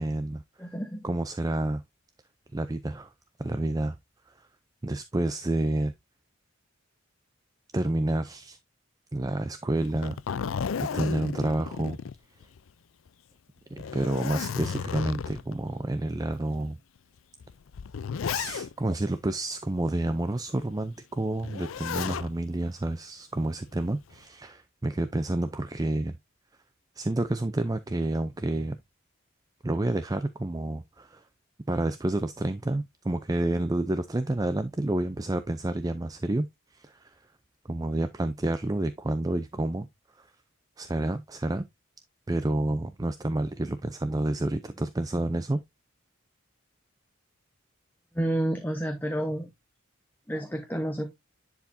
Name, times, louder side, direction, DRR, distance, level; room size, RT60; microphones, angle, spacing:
voice 1, 0.0-0.4 1.0-1.8 2.5-3.1 3.4-4.0 4.4-4.5 4.8-5.9 7.7-8.6 9.1-10.2 10.8-12.0 13.7-16.8 18.2-26.2 27.0-28.8 29.6-31.2 31.7-37.2 37.7-39.9 40.2-40.3 40.8-41.6 42.3-45.6, right 1 dB, 15° right, 0.4 m, -29 dB
voice 2, 0.6-1.1 48.1-49.5 50.3-51.1, right 1 dB, 10° left, 0.9 m, -30 dB
Zipper (clothing), 9.8-12.7 13.1-13.2 13.7-15.6 16.3-16.4 17.4-18.9 21.4-22.3 23.7-24.1, left 6 dB, 70° left, 0.4 m, -33 dB
10.5 x 4.7 x 2.6 m
head